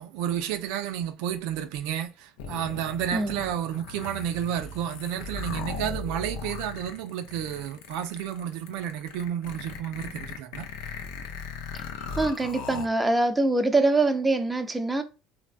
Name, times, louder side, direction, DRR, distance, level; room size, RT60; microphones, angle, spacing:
voice 1, 0.0-10.7, right 10 dB, 75° right, 0.3 m, -31 dB
sound 1, 2.4-12.9, left 4 dB, 75° left, 0.5 m, -38 dB
voice 2, 12.2-15.0, right 2 dB, 15° right, 0.5 m, -24 dB
3.1 x 2.1 x 2.4 m
hypercardioid pair, 80°, 0 cm